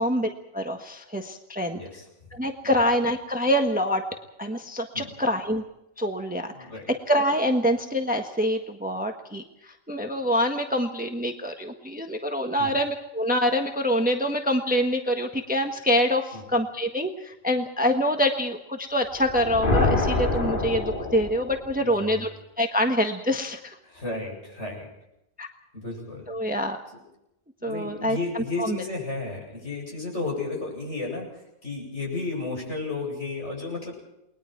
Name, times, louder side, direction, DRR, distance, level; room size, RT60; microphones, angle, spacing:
voice 1, 0.0-1.8 2.3-4.0 4.4-5.6 6.0-6.5 6.9-22.3 22.6-23.8 25.4-25.5 26.3-26.8 27.6-28.8, equal, 5° right, 4 dB, 1.4 m, -25 dB
voice 2, 1.7-2.1 2.6-2.8 4.9-5.1 6.5-6.9 12.6-12.7 16.3-16.4 21.7-22.3 23.9-24.9 25.7-26.3 27.6-33.9, left 3 dB, 55° left, -1 dB, 8.5 m, -33 dB
sound 1, 19.2-21.8, left 2 dB, 35° left, 2.9 m, -25 dB
29.5 x 21.0 x 4.6 m, 0.83 s
omnidirectional pair, 1.5 m